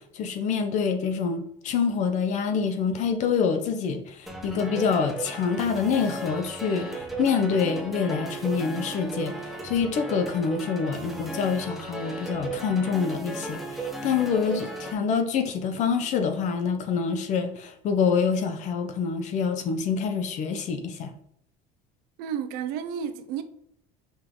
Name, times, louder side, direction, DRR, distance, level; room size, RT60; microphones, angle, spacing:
voice 1, 0.1-21.1, left 6 dB, 45° left, 1.0 m, -26 dB
sound 1, 4.3-14.9, right 2 dB, ahead, 1.1 m, -36 dB
voice 2, 22.2-23.4, right 8 dB, 70° right, 0.9 m, -31 dB
5.6 x 4.6 x 4.0 m
cardioid pair, 145°, 16 cm